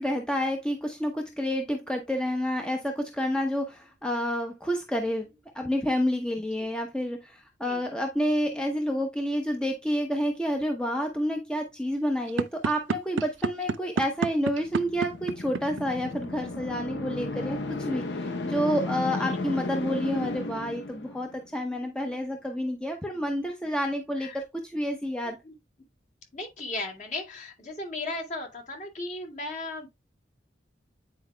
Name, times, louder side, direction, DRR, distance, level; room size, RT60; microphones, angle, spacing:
voice 1, 0.0-5.3 5.5-25.4, equal, 5° left, 0.8 m, -29 dB
sound 1, 12.3-16.3, right 4 dB, 85° right, 0.4 m, -29 dB
sound 2, 14.6-21.5, left 2 dB, 70° left, 0.8 m, -34 dB
voice 2, 26.3-29.9, left 2 dB, 40° left, 2.2 m, -36 dB
9.3 x 4.7 x 2.2 m
head